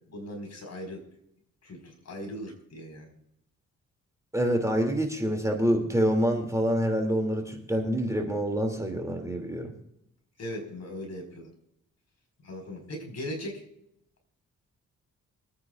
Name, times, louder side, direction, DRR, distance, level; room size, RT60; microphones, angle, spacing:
voice 1, 0.1-1.1 1.6-3.1 10.4-11.5 12.4-13.6, left 1 dB, 60° left, 2 dB, 4.9 m, -39 dB
voice 2, 4.3-9.7, equal, 10° right, 3 dB, 2.6 m, -26 dB
27.5 x 9.4 x 2.5 m, 0.77 s
cardioid pair, 80°, 30 cm